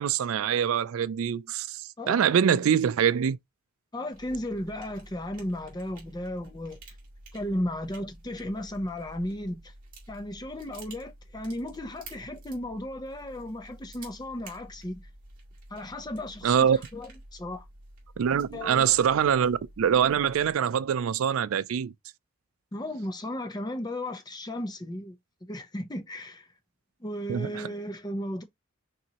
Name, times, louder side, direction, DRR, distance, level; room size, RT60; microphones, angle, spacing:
voice 1, 0.0-3.4 16.4-16.8 18.2-21.9 27.3-27.6, right 8 dB, 80° right, 0.4 m, -24 dB
voice 2, 3.9-6.8 7.3-9.7 10.1-15.1 15.7-17.7 18.5-18.9 22.7-25.2 25.4-26.5 27.0-28.4, left 1 dB, 20° left, 0.7 m, -35 dB
sound 1, 4.1-20.5, right 2 dB, 40° right, 2.0 m, -50 dB
6.0 x 2.6 x 2.8 m
head